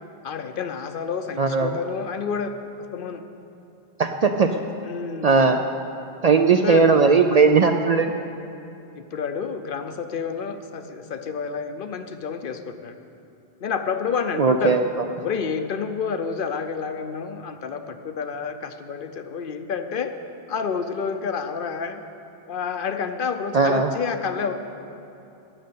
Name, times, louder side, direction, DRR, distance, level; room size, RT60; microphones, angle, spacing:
voice 1, 0.2-2.5 2.8-3.2 4.8-5.3 6.6-6.8 9.0-13.0 13.6-14.8 15.2-20.1 20.5-22.0 22.5-24.6, left 6 dB, 60° left, 8 dB, 0.8 m, -29 dB
voice 2, 1.4-1.8 4.0-4.5 5.2-5.6 6.2-8.1 14.4-14.9 23.5-23.9, right 4 dB, 55° right, 5 dB, 0.5 m, -18 dB
13.0 x 6.5 x 8.4 m, 2.7 s
omnidirectional pair, 1.0 m